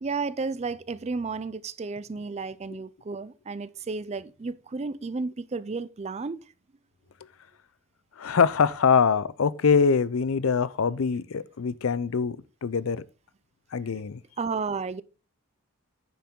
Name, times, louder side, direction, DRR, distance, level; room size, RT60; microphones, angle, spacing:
voice 1, 0.0-6.4 14.4-15.0, right 4 dB, 30° right, 0.4 m, -32 dB
voice 2, 8.2-13.0 13.7-14.2, left 5 dB, 65° left, 0.5 m, -24 dB
9.4 x 6.9 x 3.7 m
head